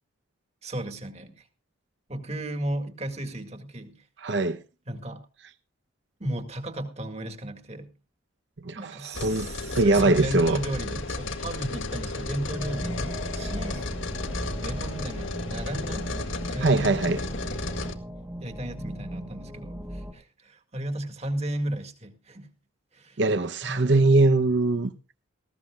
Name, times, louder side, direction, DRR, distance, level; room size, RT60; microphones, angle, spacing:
voice 1, 0.6-1.5 2.1-4.0 4.9-5.2 6.2-7.9 8.8-14.0 14.3-17.3 17.7-17.9 18.4-22.5 22.9-23.2 23.6-24.1, right 1 dB, 30° right, 2.0 m, -34 dB
voice 2, 4.2-4.6 8.6-9.5 9.7-10.6 16.6-17.2 23.2-24.9, right 2 dB, 60° right, 0.8 m, -22 dB
sound 1, 9.1-17.9, left 2 dB, 75° left, 2.0 m, -33 dB
sound 2, 12.5-20.1, equal, 10° right, 1.6 m, -37 dB
18.5 x 15.5 x 2.4 m
head